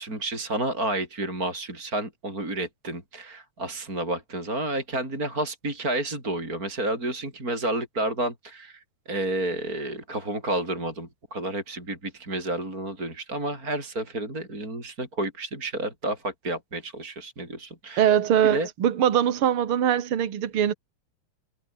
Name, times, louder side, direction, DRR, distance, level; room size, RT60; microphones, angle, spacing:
voice 1, 0.0-18.1 18.5-18.7, right 1 dB, 25° right, 8.1 m, -30 dB
voice 2, 18.0-20.7, right 9 dB, 50° right, 2.5 m, -22 dB
omnidirectional pair, 3.6 m